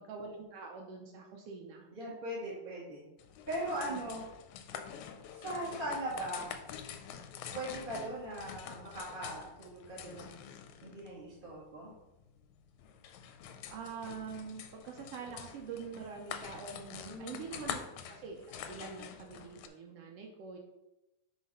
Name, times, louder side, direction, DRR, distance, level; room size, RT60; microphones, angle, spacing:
voice 1, 0.0-1.9 3.9-4.0 13.7-20.6, right 5 dB, 70° right, 1 dB, 1.4 m, -45 dB
voice 2, 1.9-3.0 3.5-4.2 5.3-6.5 7.5-10.3 10.8-11.9 17.0-17.4, right 1 dB, 25° right, -6 dB, 1.2 m, -39 dB
sound 1, 3.2-19.7, left 8 dB, 80° left, 1.9 m, -46 dB
6.4 x 4.0 x 5.4 m, 0.94 s
omnidirectional pair, 3.6 m